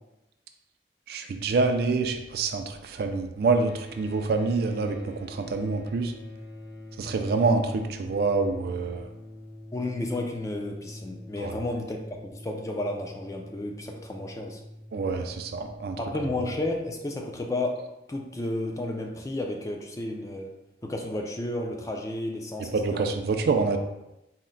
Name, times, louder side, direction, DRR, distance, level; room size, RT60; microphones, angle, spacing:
voice 1, 1.1-6.1 7.0-9.1 11.4-11.5 14.9-16.0 22.7-23.8, right 3 dB, 60° right, 6 dB, 0.3 m, -26 dB
sound 1, 3.7-15.8, left 1 dB, 70° left, 0.9 m, -45 dB
voice 2, 9.7-14.6 16.0-20.5 20.8-23.1, left 2 dB, 20° left, 2 dB, 0.3 m, -32 dB
4.2 x 2.1 x 3.7 m, 0.92 s
head